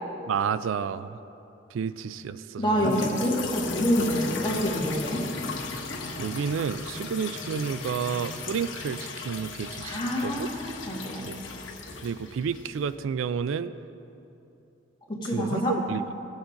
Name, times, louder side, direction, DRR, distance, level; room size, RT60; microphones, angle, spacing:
voice 1, 0.3-1.2 1.7-2.9 6.2-9.0 9.2-10.5 11.2-11.4 12.0-13.7 15.3-16.0, right 6 dB, 85° right, 14 dB, 0.3 m, -30 dB
voice 2, 2.6-5.2 9.8-11.2 15.1-15.7, equal, 25° left, -4 dB, 1.8 m, -27 dB
sound 1, 2.8-12.9, left 4 dB, 75° left, 1.1 m, -36 dB
17.0 x 7.1 x 3.8 m, 2.8 s
head